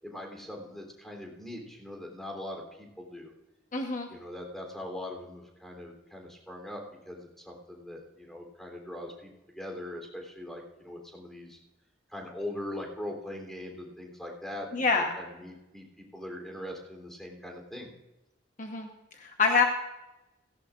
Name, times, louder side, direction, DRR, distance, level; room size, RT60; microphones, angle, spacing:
voice 1, 0.0-3.3 4.1-11.6 12.1-17.9, left 1 dB, ahead, 1 dB, 3.3 m, -41 dB
voice 2, 3.7-4.1 14.7-15.1 18.6-18.9 19.1-19.6, left 4 dB, 45° left, 3 dB, 1.1 m, -26 dB
17.0 x 16.5 x 2.5 m, 1.0 s
head